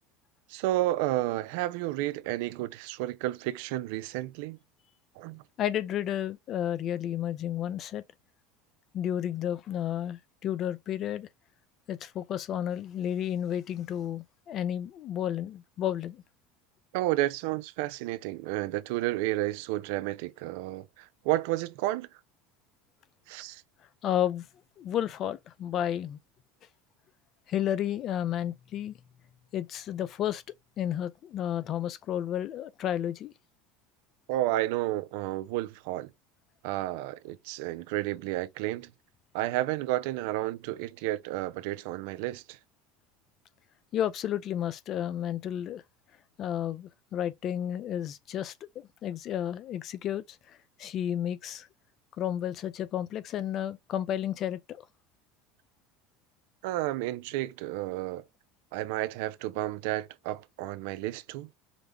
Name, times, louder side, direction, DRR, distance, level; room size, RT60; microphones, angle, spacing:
voice 1, 0.5-4.6 5.2-5.4 16.9-22.1 23.3-23.6 34.3-36.1 36.6-38.9 39.3-42.6 56.6-58.2 58.7-61.5, right 16 dB, 75° right, 0.4 m, -31 dB
voice 2, 5.6-8.0 8.9-11.3 11.9-16.2 24.0-24.5 24.8-26.2 27.5-29.0 29.5-30.4 30.8-33.3 43.9-45.8 46.4-51.7 52.2-54.8, left 10 dB, 50° left, 0.5 m, -32 dB
5.1 x 2.1 x 3.4 m
supercardioid pair, 95°, 0 cm